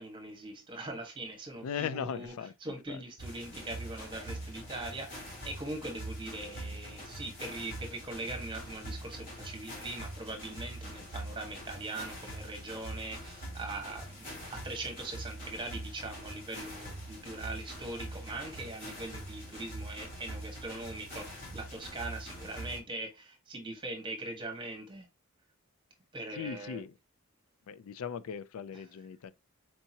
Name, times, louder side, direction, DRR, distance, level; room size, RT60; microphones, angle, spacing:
voice 1, 0.0-2.3 2.6-25.1 26.1-26.8, right 2 dB, 20° right, 1.0 m, -41 dB
voice 2, 1.6-3.1 26.3-27.0 27.6-29.3, left 7 dB, 75° left, 0.4 m, -39 dB
sound 1, 3.2-22.8, right 1 dB, 40° left, 1.4 m, -43 dB
4.5 x 2.7 x 2.8 m
head